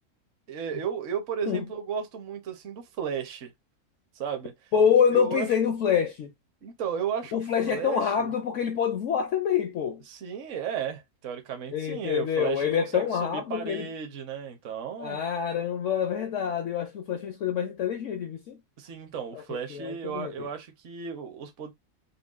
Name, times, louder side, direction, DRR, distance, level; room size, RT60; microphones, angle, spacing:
voice 1, 0.5-3.5 4.1-4.5 5.1-5.5 6.6-8.3 10.1-15.2 18.8-21.7, right 7 dB, 55° right, 1.1 m, -34 dB
voice 2, 4.7-6.3 7.3-10.0 11.7-13.9 15.0-18.6 19.5-20.3, left 7 dB, 65° left, 0.8 m, -26 dB
5.3 x 2.2 x 2.4 m
omnidirectional pair, 1.6 m